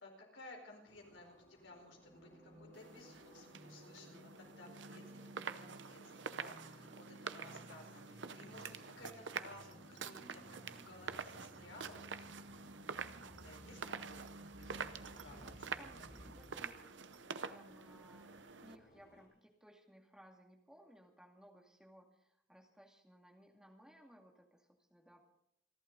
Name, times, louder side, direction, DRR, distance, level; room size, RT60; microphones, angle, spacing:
voice 1, 0.0-12.1 13.3-14.3 14.6-15.4 15.7-16.1, left 2 dB, 80° left, 1 dB, 4.7 m, -57 dB
sound 1, 0.9-19.3, left 1 dB, 55° left, 3.7 m, -67 dB
sound 2, 1.8-16.7, equal, 20° right, 6.5 m, -59 dB
sound 3, 2.7-18.8, right 5 dB, 75° right, 0.8 m, -47 dB
voice 2, 15.1-16.8 17.5-25.2, equal, 5° right, 1 dB, 2.3 m, -62 dB
28.5 x 11.5 x 4.0 m, 0.75 s
head